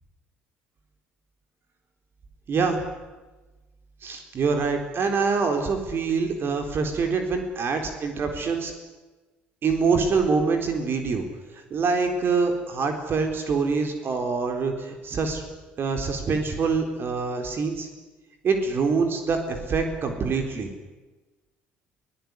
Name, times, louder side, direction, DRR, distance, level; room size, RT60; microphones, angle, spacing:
voice 1, 2.5-2.8 4.0-8.7 9.6-11.2 11.5-15.5 15.8-17.9 18.4-20.7, right 4 dB, 45° right, 5 dB, 4.0 m, -25 dB
22.5 x 17.5 x 9.8 m, 1.2 s
hypercardioid pair, 55°, 5 cm